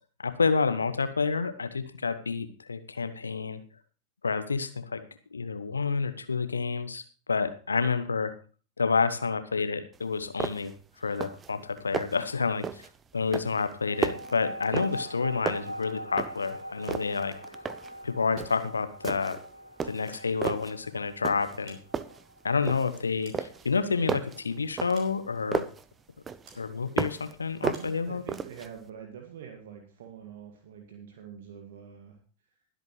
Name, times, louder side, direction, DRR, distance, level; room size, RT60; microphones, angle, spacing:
voice 1, 0.2-3.6 4.2-5.0 5.3-7.0 7.3-8.3 8.8-10.7 11.0-12.9 13.1-17.3 18.0-19.4 19.8-21.8 22.4-25.7 26.5-28.2, left 5 dB, 75° left, 11 dB, 1.1 m, -29 dB
sound 1, 9.9-10.0 10.4-10.8 11.1-11.5 11.8-12.3 12.6-13.0 13.3-15.2 15.5-16.5 16.8-18.0 18.4-18.6 19.0-19.5 19.8-20.7 21.2-21.6 21.9-23.0 23.3-25.8 26.3-27.3 27.6-28.7, right 6 dB, 20° right, 0.8 m, -34 dB
sound 2, 13.9-24.8, right 1 dB, 85° right, 1.6 m, -43 dB
sound 3, 20.0-20.7 21.4-22.4 22.9-24.1 24.9-25.6 26.5-26.7 27.7-28.0, right 4 dB, 40° right, 5.1 m, -56 dB
voice 2, 27.6-32.2, right 8 dB, 55° right, 3 dB, 2.0 m, -45 dB
21.5 x 8.1 x 3.2 m, 0.38 s
figure-of-eight pair, 90°, 0 cm